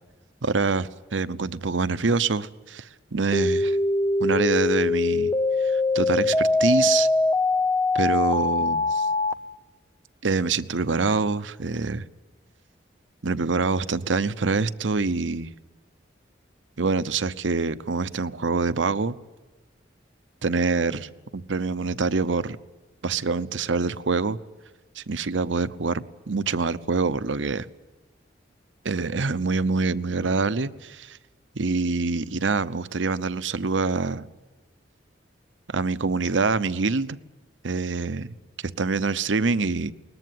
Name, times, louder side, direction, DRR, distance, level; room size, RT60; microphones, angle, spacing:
voice 1, 0.4-3.8 4.2-5.3 5.6-7.1 7.9-9.1 10.2-12.0 13.2-15.5 16.8-19.1 20.4-22.6 23.0-24.4 25.0-27.7 28.8-31.2 31.6-34.3 35.7-37.2 37.6-38.3 38.6-39.9, right 4 dB, 90° right, 0.8 m, -25 dB
sound 1, 3.3-9.3, left 3 dB, 15° left, 0.8 m, -22 dB
22.0 x 20.0 x 9.4 m
head